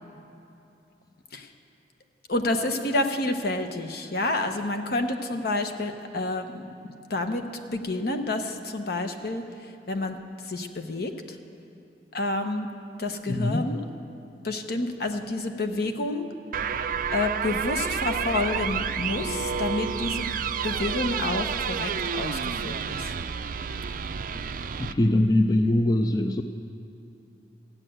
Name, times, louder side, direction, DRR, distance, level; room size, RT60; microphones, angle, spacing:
voice 1, 2.3-6.6 7.1-9.4 9.9-10.2 10.5-11.1 12.1-12.7 13.0-13.8 14.4-16.3 17.1-20.3 20.6-23.1, left 2 dB, 60° left, 6 dB, 0.9 m, -29 dB
voice 2, 13.3-13.6 24.8-26.4, left 1 dB, 20° left, 7 dB, 0.4 m, -22 dB
sound 1, 16.5-24.9, right 6 dB, 50° right, 0.4 m, -30 dB
14.5 x 9.0 x 7.7 m, 2.8 s
head